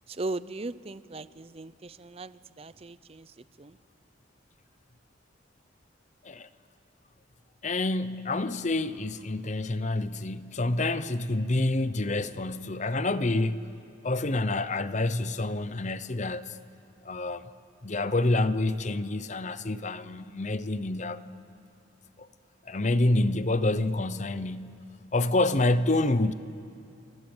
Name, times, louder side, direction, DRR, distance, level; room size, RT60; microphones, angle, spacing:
voice 1, 0.1-3.8, right 2 dB, 30° right, 0.6 m, -38 dB
voice 2, 7.6-13.7 14.0-16.6 17.0-17.5 17.8-21.2 22.2-22.3 22.6-24.8 25.1-26.3, left 2 dB, 35° left, 0.8 m, -27 dB
29.5 x 28.0 x 7.2 m
head